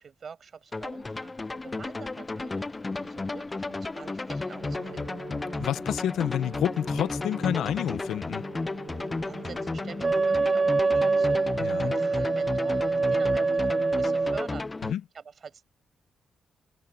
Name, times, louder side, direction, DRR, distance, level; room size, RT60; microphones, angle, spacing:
voice 1, 0.0-5.2 9.2-15.6, right 6 dB, 50° right, 7.2 m, -46 dB
sound 1, 0.7-14.9, left 3 dB, 20° left, 0.6 m, -33 dB
Wind instrument woodwind instrument, 4.5-10.5, right 9 dB, 70° right, 8.0 m, -46 dB
voice 2, 5.5-8.4 11.6-11.9 14.9-15.0, left 10 dB, 90° left, 1.0 m, -29 dB
Wind instrument woodwind instrument 2, 10.0-14.5, right 4 dB, 30° right, 2.2 m, -25 dB
cardioid pair, 105°, 0 cm